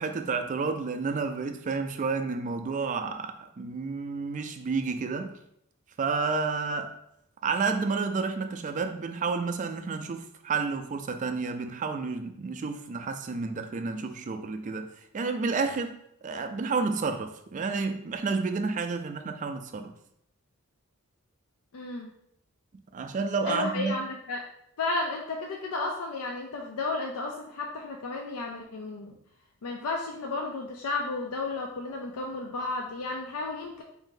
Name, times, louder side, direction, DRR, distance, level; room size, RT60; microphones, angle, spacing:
voice 1, 0.0-5.3 6.0-7.0 7.4-19.9 22.9-24.0, right 4 dB, 35° right, 0.3 m, -30 dB
voice 2, 21.7-22.1 23.4-24.4 24.8-29.1 29.6-33.8, left 3 dB, 80° left, 0.4 m, -33 dB
3.6 x 2.6 x 3.7 m
head